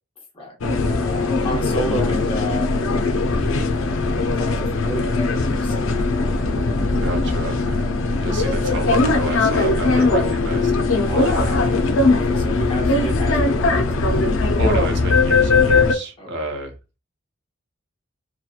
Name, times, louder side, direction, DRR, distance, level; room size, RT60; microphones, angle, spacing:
voice 1, 0.3-2.7 3.5-6.4 11.1-11.6 12.1-14.1 16.2-16.3, equal, 30° left, 0 dB, 0.8 m, -32 dB
sound 1, 0.6-15.9, left 3 dB, 85° left, 0.4 m, -19 dB
voice 2, 7.0-7.9 8.2-11.8 14.6-16.8, right 1 dB, 60° right, 3 dB, 0.7 m, -30 dB
2.8 x 2.2 x 2.3 m, 0.30 s
head